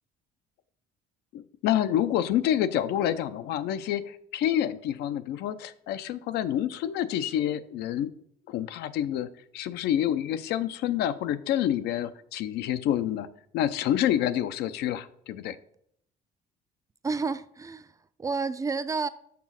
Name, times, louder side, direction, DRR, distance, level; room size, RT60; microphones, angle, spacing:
voice 1, 1.3-8.1 8.5-9.3 9.5-13.3 13.5-15.6, left 11 dB, 80° left, 0.5 m, -28 dB
voice 2, 17.0-19.1, right 4 dB, 20° right, 0.3 m, -30 dB
5.9 x 4.0 x 6.2 m
cardioid pair, 110°, 17 cm